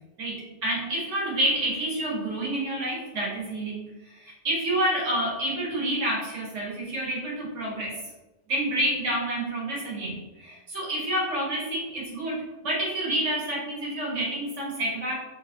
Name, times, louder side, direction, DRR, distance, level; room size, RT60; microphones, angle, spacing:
voice 1, 0.2-8.0 8.5-15.1, right 1 dB, 80° right, -4 dB, 1.7 m, -29 dB
4.7 x 3.1 x 2.8 m, 1.1 s
omnidirectional pair, 1.2 m